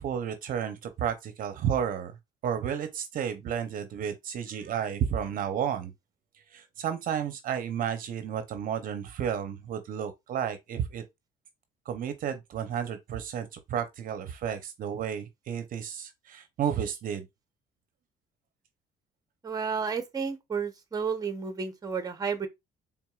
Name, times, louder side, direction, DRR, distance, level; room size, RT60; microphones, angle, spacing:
voice 1, 0.0-2.1 2.4-5.9 6.5-11.0 11.9-17.3, right 8 dB, 55° right, 0.6 m, -32 dB
voice 2, 19.4-22.5, right 5 dB, 20° right, 0.8 m, -31 dB
4.5 x 3.4 x 2.3 m
cardioid pair, 110°, 17 cm